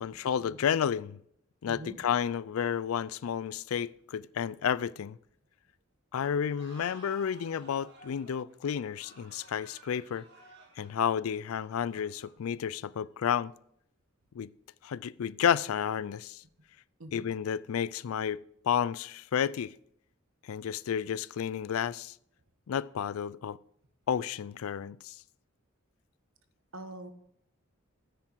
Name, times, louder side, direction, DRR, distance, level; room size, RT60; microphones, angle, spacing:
voice 1, 0.0-1.2 1.6-5.2 6.1-10.3 10.8-13.5 14.3-14.5 14.8-16.4 17.1-19.8 20.4-22.1 22.7-23.6 24.1-25.2, left 8 dB, 80° left, 0.4 m, -31 dB
voice 2, 1.7-2.0 17.0-17.3 26.7-27.1, right 1 dB, 70° right, 1.3 m, -43 dB
sound 1, 6.5-13.0, right 3 dB, 55° right, 2.1 m, -56 dB
9.5 x 8.9 x 4.5 m
head